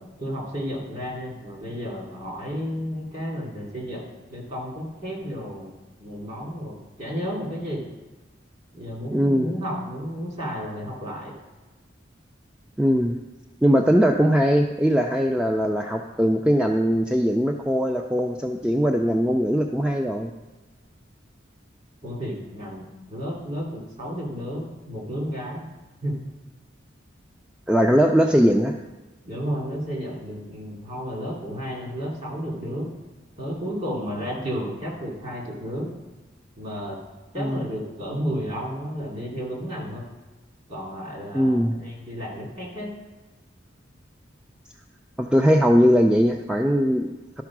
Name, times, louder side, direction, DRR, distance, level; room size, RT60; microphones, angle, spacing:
voice 1, 0.0-7.8 8.7-11.4 22.0-25.6 26.0-26.2 29.2-32.9 33.4-35.9 36.6-37.0 37.3-40.0 40.7-42.9, equal, 40° right, -2 dB, 2.7 m, -32 dB
voice 2, 9.1-9.5 12.8-13.2 13.6-20.3 27.7-28.7 37.4-37.6 41.3-41.8 45.2-47.4, equal, 5° right, 3 dB, 0.3 m, -20 dB
12.0 x 4.5 x 6.0 m, 1.2 s
head